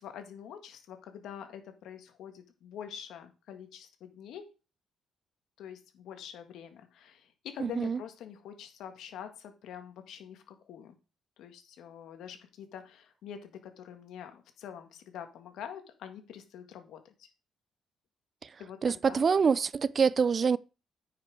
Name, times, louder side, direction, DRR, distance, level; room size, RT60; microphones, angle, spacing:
voice 1, 0.0-4.4 5.6-11.0 11.4-17.3 18.6-19.3, left 9 dB, 80° left, 1.7 m, -45 dB
voice 2, 7.6-8.0 18.4-18.5 18.8-20.6, right 6 dB, 40° right, 0.4 m, -26 dB
9.5 x 5.8 x 4.8 m
cardioid pair, 90°, 0 cm